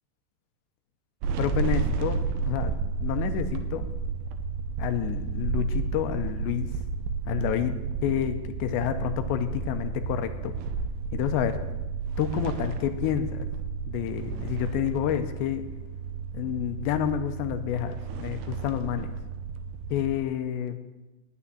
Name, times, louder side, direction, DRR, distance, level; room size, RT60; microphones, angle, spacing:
sound 1, 1.2-20.2, right 5 dB, 75° right, 2.4 m, -32 dB
voice 1, 1.4-3.9 4.8-6.7 7.3-7.8 8.0-10.5 11.1-11.6 12.2-13.5 13.9-15.7 16.3-19.2 19.9-20.8, left 10 dB, 85° left, 8 dB, 2.9 m, -29 dB
9.8 x 8.4 x 9.8 m, 1.1 s
omnidirectional pair, 5.2 m